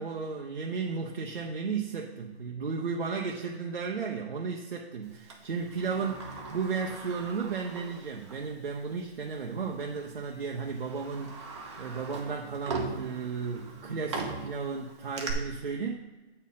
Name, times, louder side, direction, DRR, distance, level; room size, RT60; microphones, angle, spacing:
voice 1, 0.0-16.0, right 5 dB, 55° right, 0 dB, 0.9 m, -34 dB
Sliding door, 5.3-8.5 8.9-9.0 9.9-10.1 10.6-15.3, right 4 dB, 25° right, 1.0 m, -40 dB
8.0 x 4.4 x 5.6 m, 1.2 s
hypercardioid pair, 160°, 33 cm